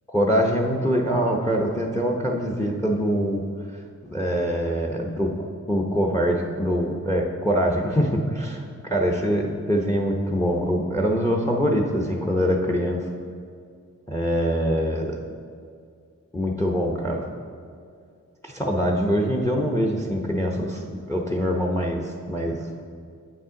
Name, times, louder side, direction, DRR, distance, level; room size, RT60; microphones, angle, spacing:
voice 1, 0.1-3.4 4.1-5.3 5.7-13.0 14.1-15.2 16.3-17.2 18.4-22.8, equal, 10° left, 1 dB, 0.8 m, -24 dB
8.5 x 5.5 x 3.7 m, 2.3 s
cardioid pair, 40°, 34 cm